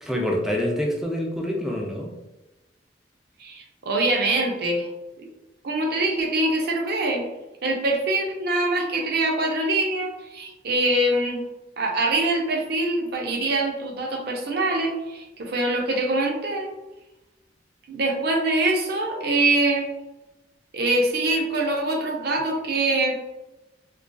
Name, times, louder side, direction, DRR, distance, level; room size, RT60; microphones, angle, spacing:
voice 1, 0.0-2.1, left 1 dB, ahead, -1 dB, 0.4 m, -26 dB
voice 2, 3.4-4.9 5.2-5.3 5.6-7.2 7.6-11.4 11.8-16.7 17.9-19.9 20.7-23.1, right 2 dB, 60° right, 1 dB, 0.5 m, -24 dB
2.4 x 2.3 x 2.2 m, 1.0 s
head